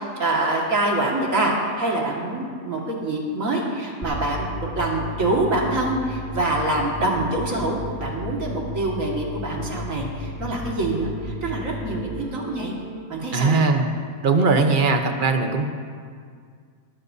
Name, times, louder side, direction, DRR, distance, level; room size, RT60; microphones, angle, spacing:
voice 1, 0.2-12.7 13.1-13.6, right 2 dB, 65° right, -2 dB, 2.3 m, -25 dB
sound 1, 4.0-13.0, left 1 dB, 10° left, 1.5 m, -34 dB
voice 2, 13.3-15.7, right 3 dB, 40° right, 5 dB, 0.9 m, -20 dB
19.0 x 13.0 x 2.7 m, 2.1 s
omnidirectional pair, 1.5 m